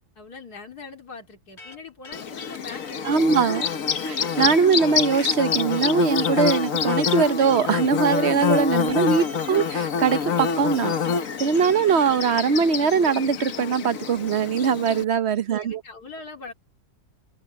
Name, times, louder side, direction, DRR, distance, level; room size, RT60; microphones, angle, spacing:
voice 1, 0.1-3.3 15.5-16.5, left 4 dB, 85° left, 3.3 m, -42 dB
sound 1, 1.6-12.1, left 3 dB, 45° left, 2.4 m, -45 dB
Bird / Buzz, 2.1-15.0, left 6 dB, 60° left, 1.5 m, -26 dB
voice 2, 3.0-3.7 4.1-10.9 11.4-15.8, right 6 dB, 50° right, 1.1 m, -21 dB
omnidirectional pair, 1.6 m